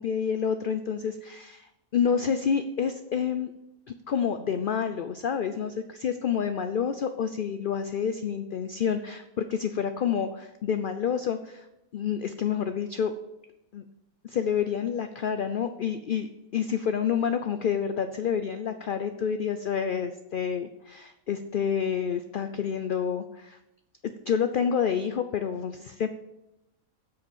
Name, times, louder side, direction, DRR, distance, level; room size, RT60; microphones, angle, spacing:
voice 1, 0.0-3.5 3.9-11.7 11.9-13.1 13.7-13.8 14.2-23.6 24.0-26.1, left 7 dB, 65° left, 9 dB, 0.5 m, -28 dB
7.9 x 6.6 x 7.1 m, 0.90 s
omnidirectional pair, 1.5 m